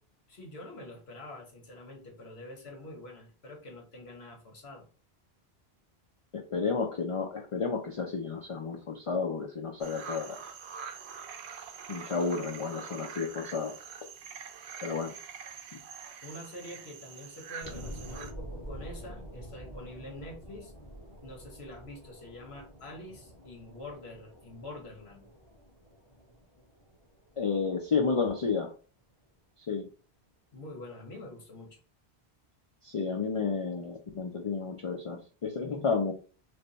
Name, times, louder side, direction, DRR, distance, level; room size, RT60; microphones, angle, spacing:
voice 1, 0.3-4.9 16.2-20.7 21.2-25.3 30.5-31.8, left 1 dB, 75° left, 2 dB, 1.3 m, -46 dB
voice 2, 6.3-10.4 11.9-13.7 14.8-15.1 27.4-28.7 29.7-29.9 32.8-36.1, left 5 dB, 45° left, 3 dB, 0.4 m, -31 dB
sound 1, 9.8-18.3, right 6 dB, 85° right, 0.8 m, -45 dB
sound 2, 17.6-28.6 29.1-29.2, equal, 30° left, 1.2 m, -47 dB
3.3 x 2.2 x 3.9 m, 0.37 s
omnidirectional pair, 1.1 m